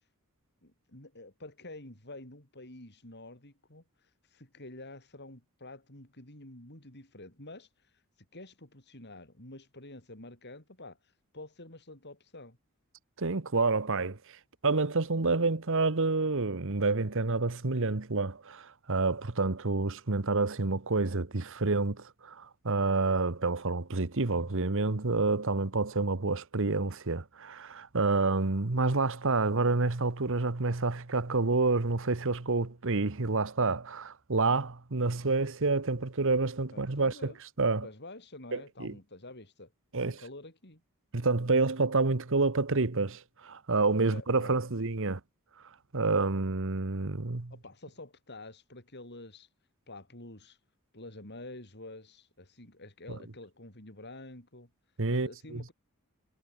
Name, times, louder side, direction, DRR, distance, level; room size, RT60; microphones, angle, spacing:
voice 1, 0.6-3.8 4.3-7.7 8.3-11.0 11.3-12.6 36.7-37.4 37.8-39.7 40.0-40.8 44.0-44.6 47.5-49.5 49.9-50.6 50.9-54.7 55.1-55.7, left 2 dB, 50° left, 7.3 m, -48 dB
voice 2, 13.2-14.2 14.6-37.1 37.6-37.9 38.5-38.9 39.9-40.2 41.1-45.2 45.9-47.5 53.1-53.2 55.0-55.6, right 3 dB, 60° right, 1.2 m, -28 dB
head